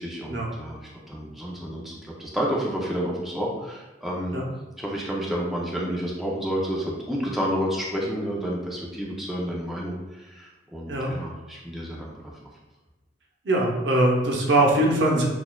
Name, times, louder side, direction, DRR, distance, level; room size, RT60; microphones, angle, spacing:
voice 1, 0.0-4.4 4.8-12.3, equal, ahead, -4 dB, 0.5 m, -30 dB
voice 2, 13.4-15.2, right 1 dB, 70° right, -1 dB, 0.7 m, -21 dB
6.1 x 2.3 x 2.3 m, 1.1 s
head